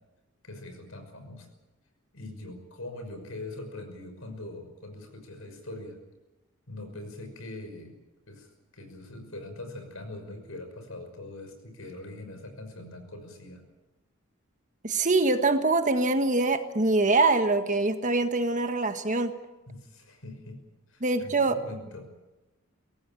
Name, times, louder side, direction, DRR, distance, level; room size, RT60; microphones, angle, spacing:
voice 1, 0.4-1.5 2.1-6.0 6.7-8.0 8.3-13.6 19.7-20.6 20.9-22.1, left 2 dB, 80° left, 6 dB, 5.9 m, -42 dB
voice 2, 14.8-19.3 21.0-21.6, right 3 dB, 35° right, 8 dB, 1.5 m, -24 dB
24.0 x 17.5 x 8.9 m, 1.1 s
head